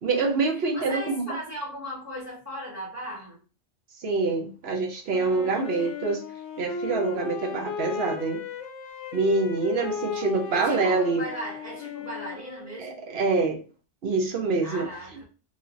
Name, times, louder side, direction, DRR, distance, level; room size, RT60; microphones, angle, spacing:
voice 1, 0.0-1.2 4.0-6.2 6.6-8.4 9.1-11.2 12.8-13.6 14.0-14.9, right 3 dB, 60° right, 2 dB, 0.9 m, -25 dB
voice 2, 0.7-3.4 5.4-5.9 9.9-10.1 10.5-13.0 14.6-15.2, equal, 15° right, -5 dB, 1.3 m, -37 dB
Wind instrument woodwind instrument, 5.1-13.1, left 5 dB, 85° left, 1.0 m, -36 dB
3.3 x 2.8 x 2.4 m, 0.36 s
omnidirectional pair, 1.3 m